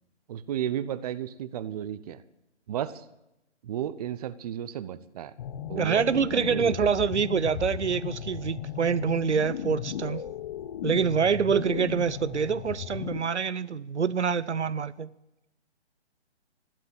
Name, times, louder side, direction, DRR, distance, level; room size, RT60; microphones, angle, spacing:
voice 1, 0.3-2.2 2.7-3.0 3.6-5.3 5.7-6.8, right 10 dB, 35° right, 0.8 m, -33 dB
sound 1, 5.4-13.2, left 9 dB, 30° left, 0.7 m, -36 dB
voice 2, 5.8-10.2 10.8-15.1, right 6 dB, 85° right, 0.8 m, -26 dB
13.5 x 12.0 x 8.8 m
figure-of-eight pair, 140°, 33 cm